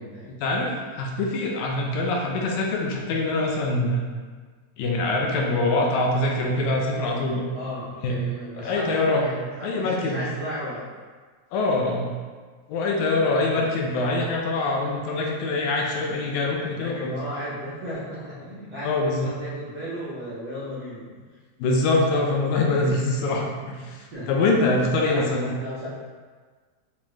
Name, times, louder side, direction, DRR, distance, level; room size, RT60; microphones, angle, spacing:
voice 1, 0.4-4.1 4.8-7.4 8.0-8.2 8.6-9.3 9.6-10.2 11.5-12.1 12.7-17.2 18.8-19.3 21.6-25.5, left 2 dB, 80° left, 0 dB, 2.0 m, -24 dB
voice 2, 7.5-10.8 13.5-13.7 16.7-21.2 24.1-24.3 25.0-25.9, equal, 85° right, -12 dB, 1.0 m, -35 dB
5.5 x 2.3 x 3.1 m, 1.5 s
omnidirectional pair, 3.3 m